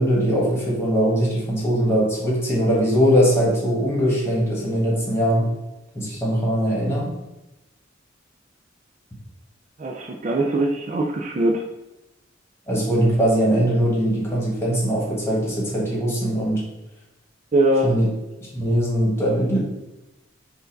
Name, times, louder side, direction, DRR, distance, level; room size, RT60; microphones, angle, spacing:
voice 1, 0.0-5.5 5.9-7.1 12.7-16.6 17.8-18.1 18.5-19.6, equal, 15° left, -4 dB, 1.5 m, -21 dB
voice 2, 9.8-11.6 17.5-17.9, right 1 dB, 40° right, 2 dB, 0.4 m, -21 dB
4.6 x 2.6 x 4.4 m, 1.0 s
head